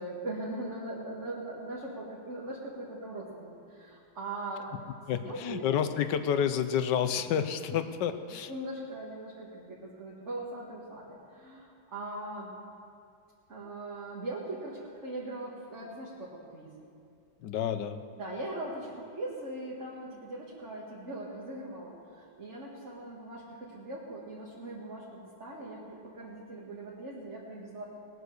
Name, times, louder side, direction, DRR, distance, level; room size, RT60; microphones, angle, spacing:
voice 1, 0.0-4.7 5.3-5.6 8.5-12.5 13.5-16.8 18.2-27.9, right 2 dB, 40° right, -6 dB, 2.1 m, -40 dB
voice 2, 5.1-8.5 17.4-18.0, left 8 dB, 70° left, 10 dB, 1.3 m, -29 dB
19.5 x 9.3 x 6.5 m, 2.4 s
omnidirectional pair, 2.0 m